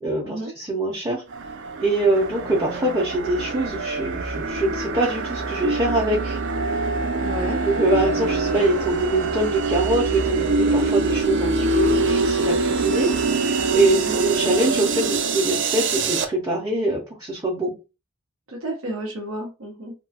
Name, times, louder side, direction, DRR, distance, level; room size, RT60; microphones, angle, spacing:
voice 1, 0.0-1.2 1.8-6.4 7.6-17.7, right 1 dB, 15° right, -4 dB, 0.6 m, -24 dB
sound 1, 1.3-16.3, right 3 dB, 55° right, 0.4 m, -24 dB
voice 2, 7.2-7.6 14.0-14.2 18.5-19.9, right 1 dB, 90° right, 1 dB, 0.9 m, -31 dB
2.9 x 2.2 x 2.7 m, 0.29 s
head